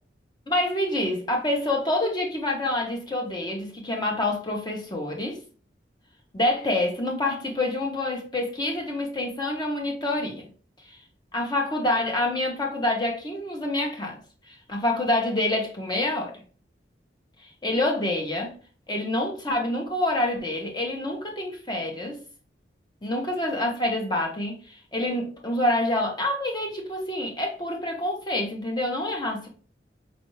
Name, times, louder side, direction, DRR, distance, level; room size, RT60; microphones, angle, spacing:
voice 1, 0.5-5.4 6.3-10.5 10.9-11.0 11.3-14.2 14.5-16.4 17.4-18.5 18.9-22.2 23.0-29.5, left 1 dB, 20° left, 0.9 m, -27 dB
5.3 x 2.6 x 3.1 m
head